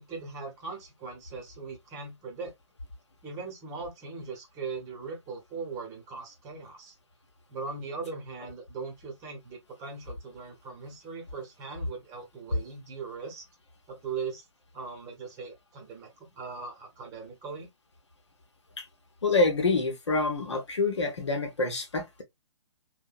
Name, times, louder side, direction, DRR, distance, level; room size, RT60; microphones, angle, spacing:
voice 1, 0.0-2.5 3.2-6.9 7.5-13.4 13.9-14.4 14.7-17.7, right 4 dB, 20° right, 0.9 m, -39 dB
voice 2, 19.2-22.2, left 3 dB, 75° left, 0.8 m, -27 dB
2.7 x 2.2 x 2.4 m
figure-of-eight pair, 125°, 15 cm